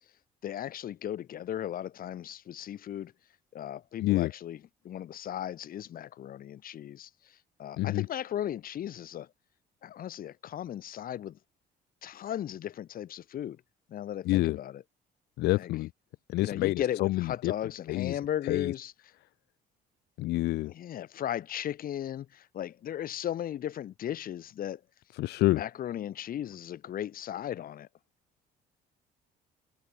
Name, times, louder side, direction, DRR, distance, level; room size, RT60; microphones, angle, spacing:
voice 1, 0.4-3.1 3.5-9.3 9.8-11.4 12.0-13.6 13.9-14.8 15.5-15.7 16.4-18.9 20.6-24.8 25.5-27.9, left 11 dB, 60° left, 5.9 m, -36 dB
voice 2, 4.0-4.3 7.8-8.1 14.3-14.6 15.4-15.9 16.3-17.5 17.9-18.2 18.4-18.7 20.2-20.7 25.2-25.6, left 18 dB, 80° left, 0.9 m, -27 dB
cardioid pair, 110°, 17 cm